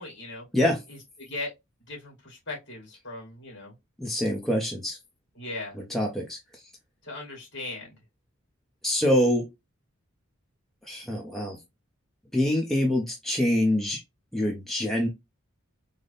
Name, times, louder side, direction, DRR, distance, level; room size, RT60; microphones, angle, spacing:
voice 1, 0.0-0.4 0.9-1.5 1.9-3.7 5.4-5.8 7.0-8.0, left 2 dB, 55° left, 2.2 m, -38 dB
voice 2, 4.0-5.0 5.8-6.4 8.8-9.5 10.9-11.6 12.3-14.0 14.3-15.1, left 1 dB, ahead, 0.6 m, -25 dB
3.9 x 2.1 x 3.3 m
head